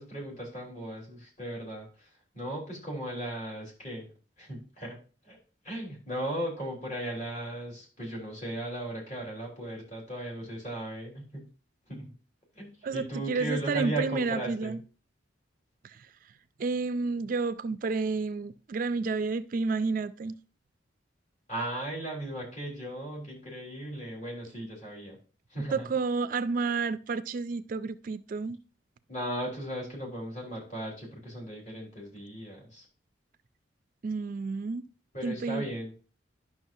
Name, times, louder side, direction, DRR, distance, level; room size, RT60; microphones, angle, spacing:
voice 1, 0.0-2.1 2.3-4.1 4.4-5.0 5.2-5.4 5.6-11.4 11.9-12.1 12.5-14.8 21.5-25.2 25.5-25.9 29.1-32.9 35.1-35.9, right 1 dB, 40° left, 3.5 m, -36 dB
voice 2, 12.8-14.8 15.8-16.1 16.6-20.3 25.7-28.6 34.0-34.8 35.2-35.6, right 4 dB, 45° right, 0.4 m, -30 dB
11.0 x 6.1 x 2.7 m
head